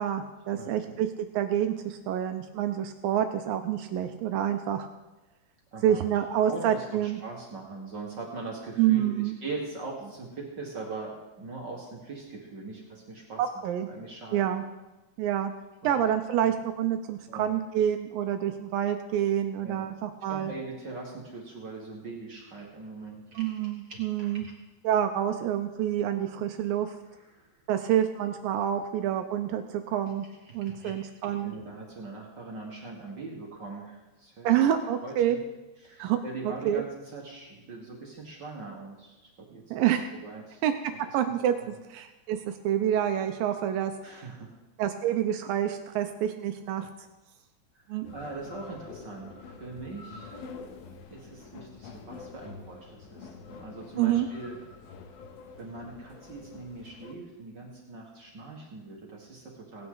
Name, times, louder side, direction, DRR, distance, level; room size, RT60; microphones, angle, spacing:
voice 1, 0.0-4.9 5.8-7.2 8.8-9.3 13.4-13.9 14.3-14.6 15.2-15.5 15.8-20.5 23.4-24.5 24.8-27.0 27.7-30.3 30.5-31.6 34.4-35.4 36.0-36.2 36.7-36.8 39.7-40.1 40.6-40.7 41.1-43.9 44.8-46.9 47.9-48.1 54.0-54.3, right 10 dB, 85° right, 7 dB, 2.0 m, -27 dB
voice 2, 0.6-1.0 5.7-6.0 6.5-14.5 15.8-16.1 16.4-16.5 17.3-17.6 19.6-19.9 20.3-24.5 27.1-27.5 30.4-34.7 35.0-35.4 35.8-39.8 40.1-40.6 41.6-41.7 44.0-44.5 47.7-50.3 51.1-54.6 55.6-59.9, right 3 dB, 55° right, -2 dB, 1.2 m, -41 dB
sound 1, 48.0-57.1, left 4 dB, 75° left, 2.6 m, -46 dB
17.5 x 9.6 x 3.9 m, 1.0 s
omnidirectional pair, 4.7 m